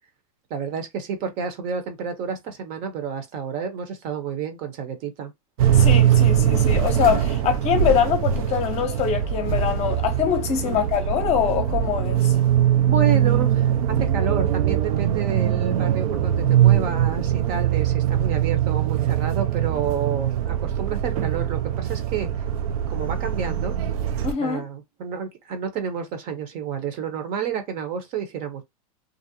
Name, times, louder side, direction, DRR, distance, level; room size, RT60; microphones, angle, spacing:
voice 1, 0.5-5.3 10.6-10.9 12.8-22.5 22.9-23.7 24.4-28.6, right 6 dB, 45° right, 0.8 m, -30 dB
sound 1, 5.6-24.3, right 10 dB, 70° right, 0.5 m, -22 dB
voice 2, 5.7-12.3 24.2-24.6, left 8 dB, 35° left, 0.7 m, -24 dB
2.5 x 2.0 x 2.7 m
supercardioid pair, 125°, 19 cm